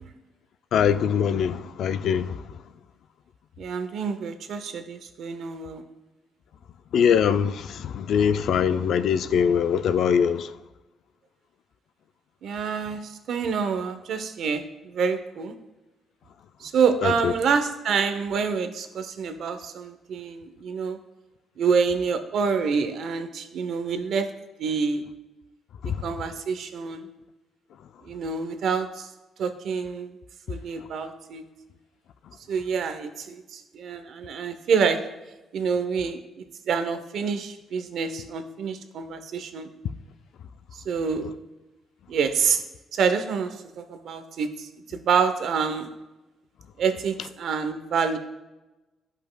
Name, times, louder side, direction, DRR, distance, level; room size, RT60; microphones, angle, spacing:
voice 1, 0.7-2.4 6.9-10.5 17.0-17.3 25.8-25.9, left 7 dB, 70° left, 0.3 m, -22 dB
voice 2, 3.6-5.8 12.4-15.5 16.6-21.0 21.6-24.3 24.6-25.0 26.0-27.1 28.0-29.1 29.4-30.2 30.5-31.4 32.5-35.0 35.5-36.2 36.7-39.7 40.7-41.3 42.1-42.6 42.9-45.9 46.8-48.2, right 6 dB, 65° right, 0.6 m, -27 dB
11.0 x 5.4 x 2.2 m
cardioid pair, 115°, 0 cm